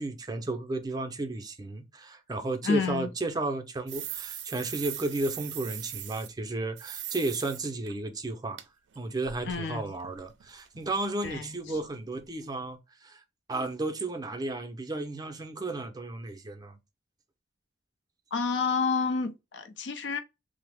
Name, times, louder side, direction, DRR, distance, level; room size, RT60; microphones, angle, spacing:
voice 1, 0.0-8.6 9.0-13.2 13.5-16.8, right 2 dB, 20° right, 0.5 m, -33 dB
voice 2, 2.6-3.1 9.5-9.8 11.2-11.8 18.3-20.2, left 4 dB, 70° left, 0.5 m, -29 dB
sound 1, 3.9-6.3 6.8-7.6 7.9-8.0 8.6-8.7 8.9-10.9 11.2-11.4 11.7-11.8 12.1-12.3 12.6-12.7, right 11 dB, 75° right, 0.4 m, -41 dB
3.3 x 2.0 x 3.3 m
head